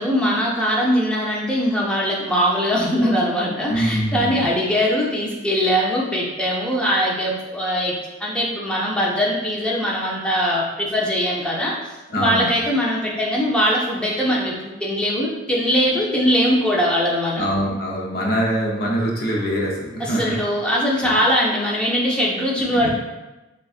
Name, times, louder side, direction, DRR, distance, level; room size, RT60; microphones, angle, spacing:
voice 1, 0.0-7.9 8.2-11.8 12.2-17.4 20.0-22.9, equal, 5° left, -4 dB, 0.6 m, -21 dB
voice 2, 3.7-4.5 12.1-12.5 17.4-20.3 21.0-21.2 22.7-22.9, equal, 55° left, -2 dB, 0.8 m, -23 dB
6.8 x 2.4 x 2.4 m, 1.1 s
head